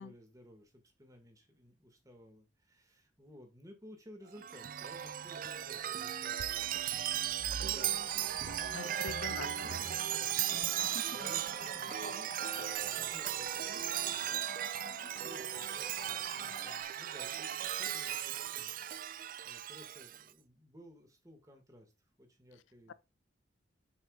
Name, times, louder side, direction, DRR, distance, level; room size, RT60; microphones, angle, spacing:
voice 1, 0.0-6.8 7.6-18.9 19.4-21.9 22.2-22.9, equal, 20° right, 1.9 m, -57 dB
Chime, 4.4-20.2, right 11 dB, 45° right, 0.4 m, -37 dB
sound 1, 7.8-16.8, left 3 dB, 20° left, 0.4 m, -51 dB
voice 2, 8.7-9.8 10.5-10.7 22.9-23.0, left 5 dB, 85° left, 0.5 m, -44 dB
7.3 x 5.6 x 2.4 m
head